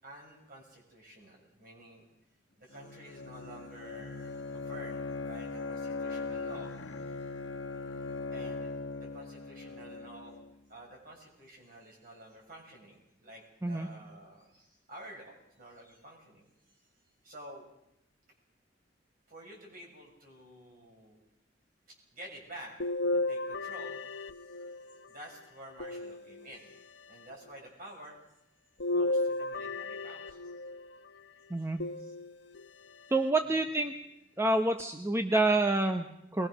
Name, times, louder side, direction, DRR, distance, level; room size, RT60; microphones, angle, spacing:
voice 1, 0.0-2.0 2.6-7.3 8.3-10.4 10.7-16.4 16.7-16.9 17.2-17.7 19.3-21.2 21.9-24.6 25.1-26.6 27.1-28.2 28.9-30.5 31.6-31.7 32.0-32.1 33.4-33.7, right 1 dB, 50° right, 0 dB, 6.6 m, -50 dB
Bowed string instrument, 2.7-10.5, left 3 dB, 90° left, 1.2 m, -39 dB
sound 1, 22.8-25.1 25.8-26.8 28.8-30.9 31.8-32.7 33.3-33.4 34.8-34.9, left 2 dB, 65° left, 1.0 m, -34 dB
voice 2, 33.1-33.9 34.4-36.5, right 2 dB, 15° right, 6 dB, 0.9 m, -28 dB
22.0 x 20.5 x 6.4 m, 0.83 s
head